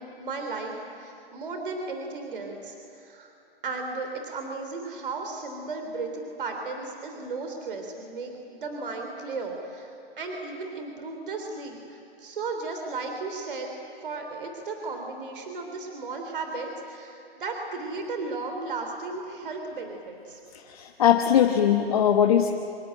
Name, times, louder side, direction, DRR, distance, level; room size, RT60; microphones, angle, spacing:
voice 1, 0.0-3.3 3.6-20.4, right 3 dB, 55° right, 4 dB, 3.7 m, -35 dB
voice 2, 20.7-22.5, left 9 dB, 35° left, 3 dB, 1.3 m, -20 dB
26.5 x 23.5 x 9.1 m, 2.6 s
hypercardioid pair, 165°, 31 cm